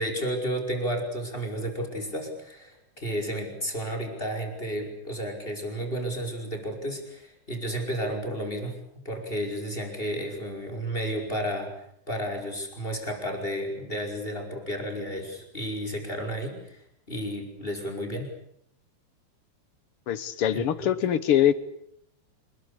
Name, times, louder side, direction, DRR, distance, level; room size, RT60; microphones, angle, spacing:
voice 1, 0.0-8.8 9.1-11.7 12.1-16.8 17.1-18.3 20.5-20.9, equal, 15° left, 2 dB, 5.4 m, -32 dB
voice 2, 20.1-21.5, left 10 dB, 60° left, 15 dB, 1.8 m, -23 dB
27.5 x 21.5 x 8.5 m, 0.72 s
omnidirectional pair, 3.4 m